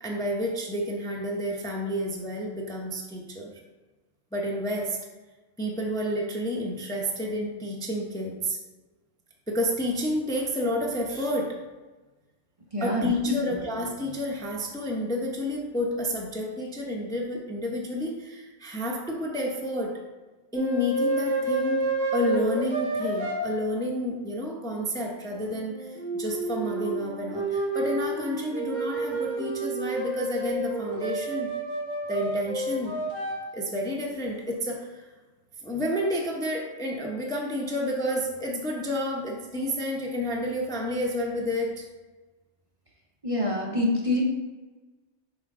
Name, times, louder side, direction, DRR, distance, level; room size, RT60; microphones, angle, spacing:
voice 1, 0.0-3.5 4.3-5.0 5.6-8.6 9.5-11.6 12.8-20.0 20.5-21.8 22.1-31.5 32.1-32.9 33.5-35.1 35.6-41.9, equal, 5° left, -1 dB, 0.7 m, -30 dB
voice 2, 12.7-13.6 43.2-44.2, left 1 dB, 30° right, -2 dB, 0.8 m, -26 dB
sound 1, 20.5-23.4 25.3-33.4, right 2 dB, 85° right, 1.7 m, -30 dB
5.7 x 5.6 x 3.7 m, 1.2 s
omnidirectional pair, 1.2 m